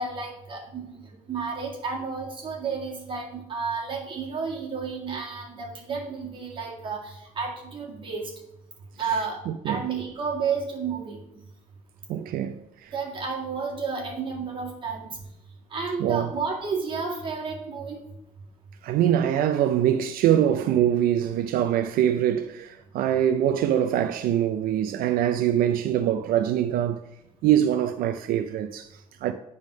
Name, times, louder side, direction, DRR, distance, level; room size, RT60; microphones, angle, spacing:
voice 1, 0.0-8.3 9.0-9.4 9.6-11.2 12.9-15.1 15.7-18.1, right 5 dB, 35° right, 2.0 m, -31 dB
voice 2, 9.5-9.8 12.1-12.9 16.0-16.3 18.8-27.0 27.4-29.3, right 10 dB, 85° right, 0.5 m, -24 dB
9.2 x 3.6 x 6.2 m
cardioid pair, 170°, 15 cm